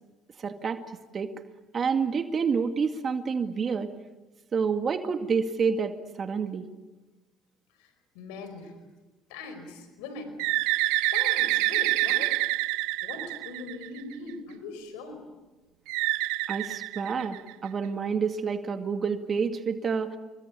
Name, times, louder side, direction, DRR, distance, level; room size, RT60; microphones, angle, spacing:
voice 1, 0.4-0.8 1.1-1.4 1.7-3.9 4.5-6.7 16.5-20.2, right 5 dB, 40° right, 6 dB, 2.1 m, -28 dB
voice 2, 8.1-8.7 9.3-10.3 11.1-12.4 13.0-15.2, left 3 dB, 90° left, 8 dB, 4.9 m, -40 dB
Bird, 10.4-14.1 15.9-17.7, right 18 dB, 85° right, 0.9 m, -27 dB
29.0 x 22.5 x 8.5 m, 1.2 s
supercardioid pair, 85°, 0 cm